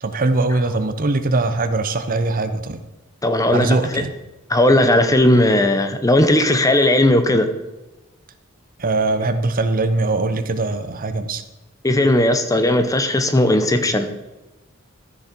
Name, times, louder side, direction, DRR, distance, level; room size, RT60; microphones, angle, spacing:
voice 1, 0.0-2.8 3.5-4.1 8.8-11.4, right 2 dB, 40° right, 9 dB, 0.8 m, -21 dB
voice 2, 3.2-4.0 4.5-7.5 11.8-14.1, left 1 dB, 15° left, 8 dB, 0.8 m, -16 dB
13.5 x 6.4 x 4.5 m, 1.0 s
head